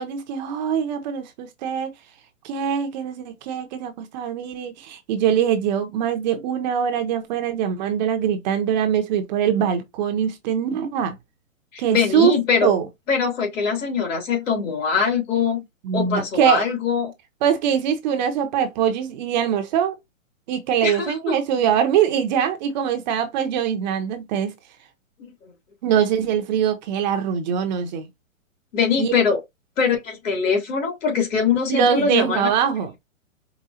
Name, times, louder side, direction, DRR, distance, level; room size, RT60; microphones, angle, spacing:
voice 1, 0.0-1.9 2.4-11.1 11.8-12.3 12.6-12.9 15.8-16.6 17.4-20.0 20.5-24.5 25.8-28.0 29.0-29.1 31.7-32.9, right 8 dB, 35° right, 0.7 m, -22 dB
voice 2, 11.7-12.7 13.1-15.6 15.9-17.1 20.8-21.3 25.2-25.5 28.7-29.4 29.8-32.5, left 6 dB, 65° left, 2.8 m, -22 dB
4.9 x 2.3 x 2.8 m
hypercardioid pair, 145°, 40 cm